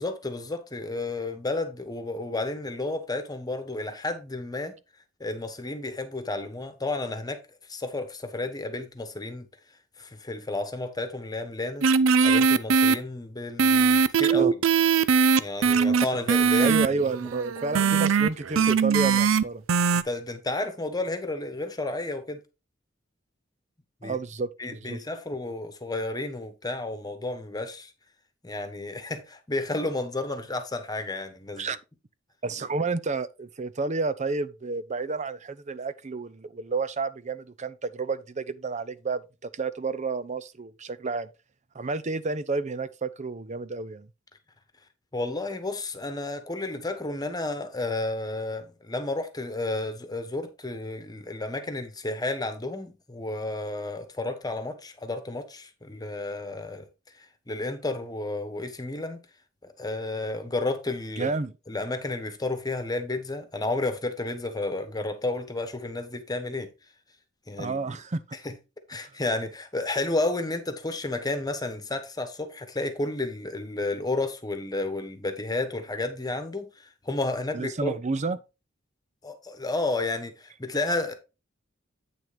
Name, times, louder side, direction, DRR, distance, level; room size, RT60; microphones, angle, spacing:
voice 1, 0.0-4.8 5.2-7.4 7.7-9.5 10.0-11.9 12.2-14.5 15.4-16.8 19.9-22.4 24.0-24.2 24.6-27.9 28.4-31.7 45.1-56.8 57.5-59.2 59.6-61.3 61.7-66.7 67.5-68.0 68.4-68.5 68.9-77.9 79.2-81.1, left 2 dB, 20° left, 1.3 m, -31 dB
sound 1, 11.8-13.0 13.6-19.4 19.7-20.0, right 6 dB, 80° right, 0.5 m, -21 dB
voice 2, 16.6-19.6 24.0-25.0 31.6-31.8 32.4-41.3 41.7-44.1 61.2-61.5 67.6-68.4 69.0-69.1 77.5-78.4, right 3 dB, 35° right, 0.6 m, -30 dB
8.7 x 6.3 x 3.4 m
head